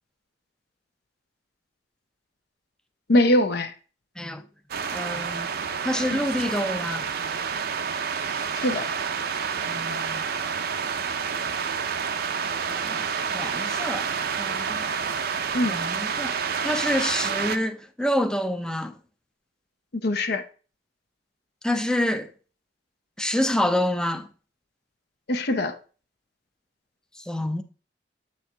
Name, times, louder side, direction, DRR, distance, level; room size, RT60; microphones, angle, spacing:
voice 1, 3.1-3.7 6.1-6.2 8.5-8.9 15.5-15.7 20.0-20.4 25.3-25.8, left 1 dB, 60° left, 0.8 m, -22 dB
sound 1, 4.7-17.6, right 6 dB, 60° right, 0.6 m, -29 dB
voice 2, 4.9-5.5 5.8-7.1 9.6-10.2 12.7-13.0 13.3-14.1 14.4-14.8 15.7-16.3 16.6-18.9 21.6-22.3 23.2-24.3 27.3-27.6, left 1 dB, 5° left, 0.5 m, -27 dB
7.5 x 4.4 x 3.3 m
head